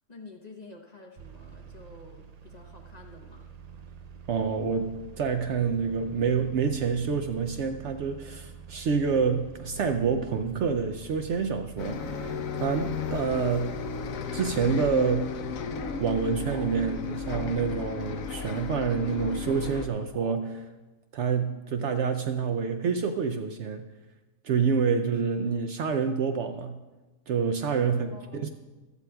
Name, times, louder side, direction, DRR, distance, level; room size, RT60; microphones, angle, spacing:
voice 1, 0.1-3.5 27.8-28.5, left 3 dB, 35° left, 1 dB, 0.9 m, -49 dB
sound 1, 1.2-19.9, right 7 dB, 80° right, 0.3 m, -47 dB
voice 2, 4.3-13.8 14.3-15.3 16.0-20.7 21.1-23.9 24.4-26.8 27.3-28.5, right 5 dB, 65° right, 7 dB, 0.8 m, -27 dB
Bus, 11.8-19.9, left 6 dB, 75° left, 1.1 m, -34 dB
sound 2, 15.7-16.0 16.5-16.7 17.2-17.5 18.3-18.5 19.3-19.4 20.1-20.6 21.2-21.4, right 1 dB, 20° right, 0.9 m, -44 dB
15.0 x 13.0 x 2.3 m, 1.2 s
omnidirectional pair, 1.5 m